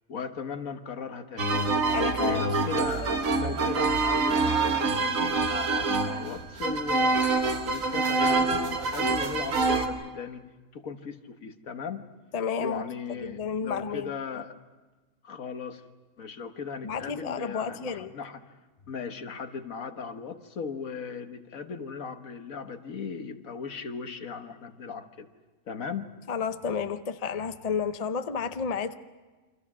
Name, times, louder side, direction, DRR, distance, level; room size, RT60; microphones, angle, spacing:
voice 1, 0.1-1.5 2.2-7.3 7.6-10.5 10.7-12.1 12.6-14.6 15.2-15.8 16.2-18.4 18.9-25.3 25.7-26.1, left 5 dB, 70° left, 7 dB, 1.7 m, -37 dB
sound 1, 1.4-9.9, right 3 dB, 70° right, 1.8 m, -26 dB
voice 2, 1.9-2.4 12.3-12.8 13.2-14.1 16.8-18.1 26.3-28.9, left 6 dB, 35° left, 9 dB, 0.7 m, -31 dB
29.0 x 25.0 x 6.1 m, 1.3 s
omnidirectional pair, 1.5 m